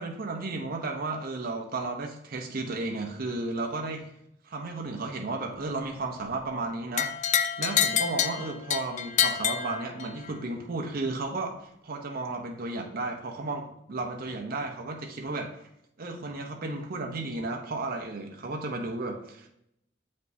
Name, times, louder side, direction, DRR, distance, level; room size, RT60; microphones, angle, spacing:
voice 1, 0.0-4.1 4.4-15.7 16.0-19.5, right 3 dB, 50° right, 2 dB, 0.7 m, -34 dB
sound 1, 7.0-10.3, left 9 dB, 40° left, 0.3 m, -27 dB
7.8 x 5.3 x 2.7 m, 0.77 s
head